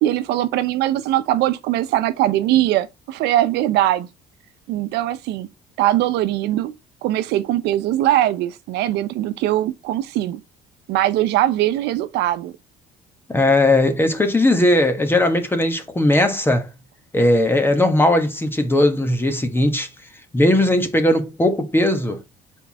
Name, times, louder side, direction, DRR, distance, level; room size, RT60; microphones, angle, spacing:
voice 1, 0.0-4.1 4.7-5.5 5.8-6.7 7.0-10.4 10.9-12.5, right 13 dB, 85° right, 0.8 m, -21 dB
voice 2, 13.3-16.7 17.1-19.9 20.3-22.2, left 1 dB, 15° left, 1.4 m, -18 dB
6.8 x 4.6 x 4.1 m
cardioid pair, 110°, 17 cm